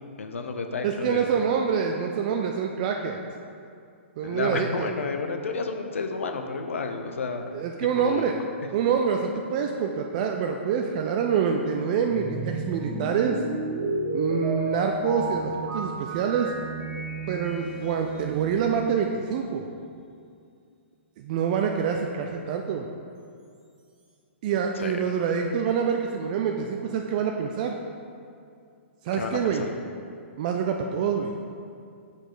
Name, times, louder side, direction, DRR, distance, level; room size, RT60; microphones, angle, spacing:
voice 1, 0.2-1.4 4.2-7.5 7.9-8.3 24.8-25.0 29.1-29.7, left 4 dB, 90° left, 5 dB, 0.6 m, -31 dB
voice 2, 0.8-3.2 4.2-4.9 7.5-8.4 8.7-13.4 14.1-16.5 17.3-19.7 21.2-22.9 24.4-27.7 29.0-29.7 30.4-31.3, right 7 dB, 40° right, 3 dB, 0.4 m, -26 dB
sound 1, 12.1-19.3, right 3 dB, 15° right, 0.9 m, -32 dB
6.5 x 4.9 x 3.9 m, 2.4 s
hypercardioid pair, 145°, 7 cm